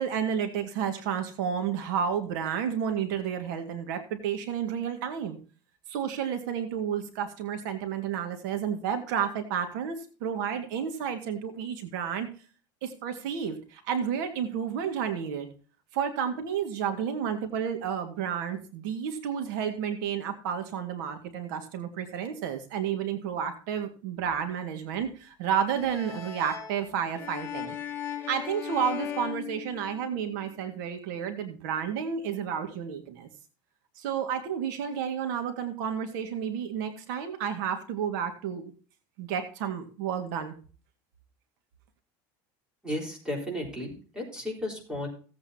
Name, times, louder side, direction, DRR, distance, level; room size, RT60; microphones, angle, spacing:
voice 1, 0.0-5.4 5.9-12.3 12.8-15.5 15.9-27.8 28.3-33.3 34.0-38.7 39.2-40.6, right 8 dB, 80° right, 6 dB, 1.9 m, -31 dB
sound 1, 25.7-30.3, left 10 dB, 25° left, 2.0 m, -38 dB
voice 2, 42.8-45.1, left 1 dB, 10° right, -2 dB, 4.0 m, -34 dB
16.5 x 8.3 x 2.8 m, 0.38 s
cardioid pair, 155°, 10 cm